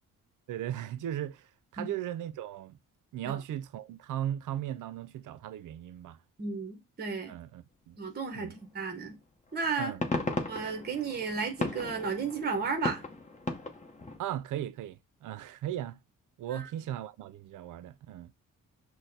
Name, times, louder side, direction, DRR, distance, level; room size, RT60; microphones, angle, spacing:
voice 1, 0.5-2.8 3.1-6.2 7.3-8.0 8.3-8.5 9.8-10.0 14.2-16.0 16.4-18.3, right 11 dB, 70° right, 0.5 m, -37 dB
voice 2, 6.4-7.3 8.0-9.2 9.5-9.9 10.5-13.0 16.5-16.7, right 5 dB, 30° right, 0.8 m, -33 dB
sound 1, 8.9-9.1 9.6-14.2, left 3 dB, 20° left, 0.8 m, -36 dB
6.1 x 2.1 x 2.6 m
cardioid pair, 75°, 33 cm